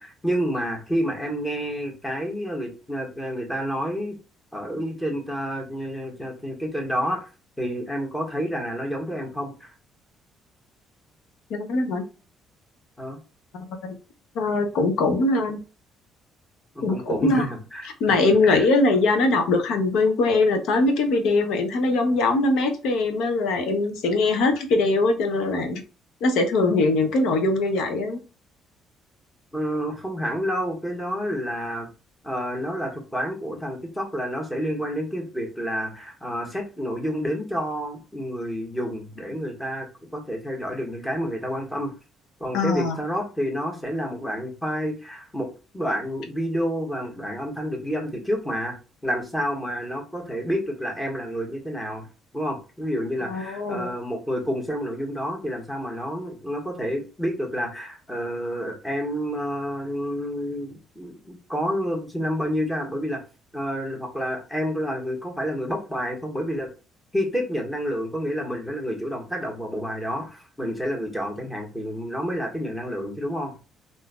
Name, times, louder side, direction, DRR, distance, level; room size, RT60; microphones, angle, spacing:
voice 1, 0.0-4.2 4.5-7.2 7.6-9.7 13.0-13.2 16.7-17.9 18.4-18.6 29.5-31.9 32.2-39.9 40.1-41.9 42.4-45.5 45.7-48.8 49.0-52.1 52.3-63.2 63.5-66.7 67.1-73.5, equal, 10° left, 1 dB, 1.3 m, -29 dB
voice 2, 11.5-12.0 13.5-14.0 14.3-15.6 16.8-17.5 18.0-25.8 26.2-28.2 42.5-43.0 53.3-53.9, left 2 dB, 80° left, 6 dB, 0.7 m, -22 dB
3.6 x 2.6 x 2.3 m, 0.33 s
cardioid pair, 95°, 0 cm